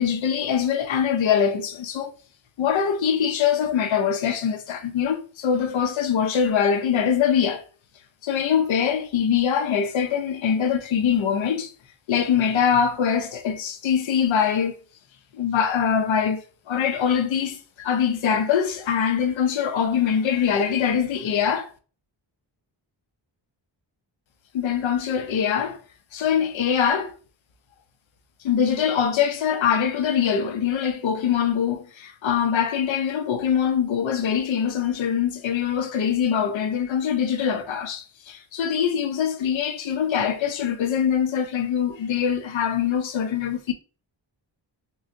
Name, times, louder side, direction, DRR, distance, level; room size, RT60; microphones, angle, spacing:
voice 1, 0.0-2.1 2.6-7.6 8.2-11.7 12.1-14.8 15.4-21.7 24.5-25.8 26.1-27.1 28.4-43.7, left 7 dB, 90° left, 0.7 m, -23 dB
3.6 x 3.1 x 2.5 m
wide cardioid pair, 105°, 45 cm